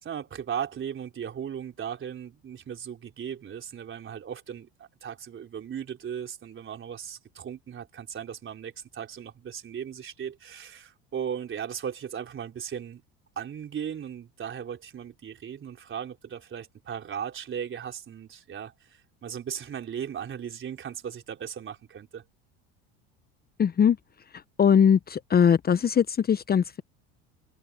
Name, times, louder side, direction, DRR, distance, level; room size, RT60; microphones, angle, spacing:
voice 1, 0.0-13.0 13.4-22.2, right 8 dB, 40° right, 4.1 m, -37 dB
voice 2, 23.6-24.0 24.6-26.8, left 7 dB, 30° left, 0.9 m, -21 dB
hypercardioid pair, 80°, 32 cm